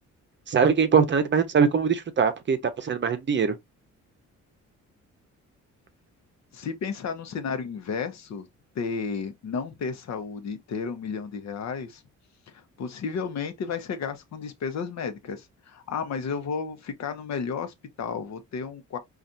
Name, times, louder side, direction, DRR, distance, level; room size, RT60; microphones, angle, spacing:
voice 1, 0.5-3.6, right 6 dB, 40° right, 0.7 m, -22 dB
voice 2, 6.5-8.5 8.7-12.0 12.5-19.0, left 5 dB, 60° left, 0.9 m, -32 dB
4.1 x 2.5 x 2.5 m
cardioid pair, 90°, 30 cm